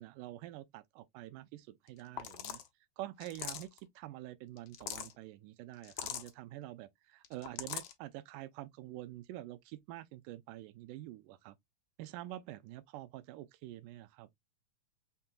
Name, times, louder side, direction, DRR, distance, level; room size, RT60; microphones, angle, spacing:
voice 1, 0.0-2.6 3.0-11.6 12.0-14.3, right 15 dB, 85° right, 2.2 m, -47 dB
sound 1, 1.9-2.0 2.2-2.7 3.2-3.8 4.6-5.1 5.8-6.3 7.2-7.9, left 10 dB, 75° left, 1.4 m, -41 dB
5.8 x 3.7 x 2.2 m
omnidirectional pair, 3.6 m